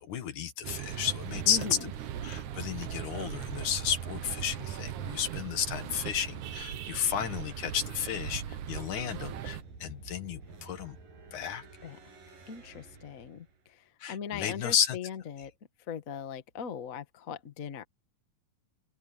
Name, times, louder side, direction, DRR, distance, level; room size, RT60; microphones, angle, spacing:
voice 1, 0.0-1.7 2.2-11.0 11.3-11.7 14.0-15.0, left 9 dB, 65° left, 2.8 m, -33 dB
sound 1, 0.6-9.6, right 10 dB, 70° right, 2.5 m, -39 dB
voice 2, 1.5-1.9 11.8-12.0 12.5-15.5 15.9-17.8, left 7 dB, 45° left, 1.0 m, -40 dB
sound 2, 2.3-13.7, right 4 dB, 85° right, 8.2 m, -50 dB
open air
omnidirectional pair, 3.9 m